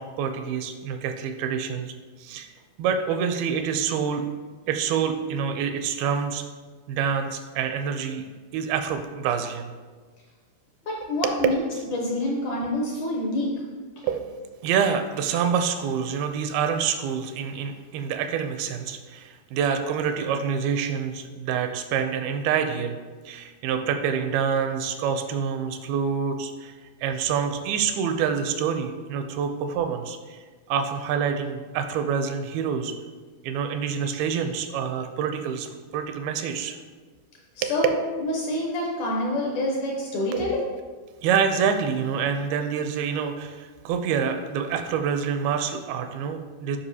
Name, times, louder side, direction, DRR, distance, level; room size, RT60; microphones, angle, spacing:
voice 1, 0.0-2.5 2.8-4.3 4.7-6.5 6.9-8.3 8.5-9.7 11.2-11.3 14.0-23.0 23.3-26.7 27.0-32.9 33.4-36.8 37.6-37.7 40.3-40.5 41.2-46.8, right 7 dB, 85° right, 7 dB, 2.4 m, -27 dB
voice 2, 10.9-11.6 11.9-13.6 14.0-14.1 37.6-40.6, left 1 dB, 70° left, -2 dB, 1.9 m, -27 dB
9.9 x 5.1 x 2.7 m, 1.4 s
omnidirectional pair, 4.4 m